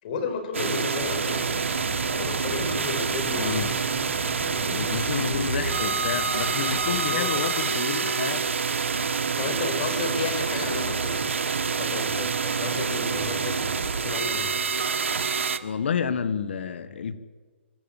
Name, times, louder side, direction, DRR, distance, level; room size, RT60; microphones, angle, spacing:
voice 1, 0.0-3.7 4.4-6.1 6.6-7.4 9.4-14.5, left 4 dB, 40° left, 5.3 m, -34 dB
sound 1, 0.5-15.6, right 5 dB, 90° right, 1.5 m, -27 dB
sound 2, 1.0-7.7, left 4 dB, 15° left, 2.4 m, -42 dB
voice 2, 3.4-3.7 4.6-8.4 15.6-17.2, left 7 dB, 65° left, 1.4 m, -29 dB
26.0 x 14.5 x 9.1 m
hypercardioid pair, 155°, 7 cm